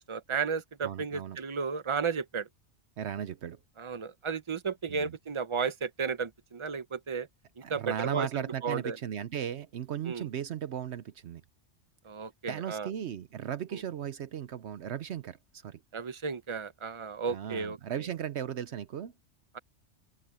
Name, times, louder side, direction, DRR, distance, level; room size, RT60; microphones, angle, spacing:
voice 1, 0.0-2.5 3.8-7.3 7.7-9.0 10.0-10.3 12.0-12.9 13.7-13.8 15.9-17.8, right 5 dB, 30° right, 0.9 m, -33 dB
voice 2, 0.8-1.4 3.0-3.6 4.9-5.1 7.6-11.4 12.5-15.8 17.3-19.1, right 9 dB, 70° right, 0.9 m, -36 dB
open air
omnidirectional pair, 1.2 m